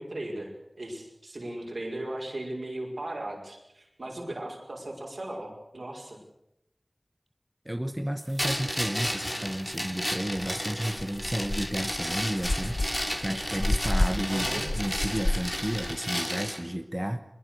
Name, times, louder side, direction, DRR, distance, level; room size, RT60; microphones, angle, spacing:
voice 1, 0.0-6.2 14.3-14.7, right 1 dB, 85° right, 0 dB, 5.6 m, -37 dB
voice 2, 7.6-17.2, right 1 dB, 15° right, 8 dB, 1.1 m, -32 dB
sound 1, 8.4-16.6, equal, 10° left, 3.1 m, -33 dB
sound 2, 10.4-10.5 10.9-16.0, left 1 dB, 50° left, 0.9 m, -31 dB
23.0 x 21.5 x 6.6 m, 0.84 s
wide cardioid pair, 50°, 0 cm